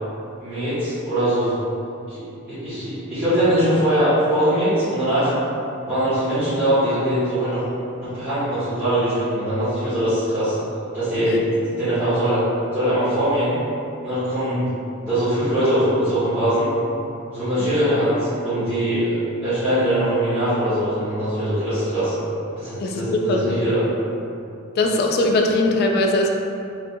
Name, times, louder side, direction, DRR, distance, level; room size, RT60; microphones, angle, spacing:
voice 1, 0.4-1.5 2.1-5.3 5.8-7.6 8.0-10.5 10.9-12.4 12.7-13.6 14.0-14.7 15.0-16.7 17.3-19.1 19.4-22.1 22.5-23.8, right 1 dB, 10° right, -20 dB, 1.4 m, -21 dB
voice 2, 24.8-26.3, left 2 dB, 50° left, 2 dB, 0.3 m, -20 dB
3.3 x 2.6 x 2.6 m, 2.6 s
head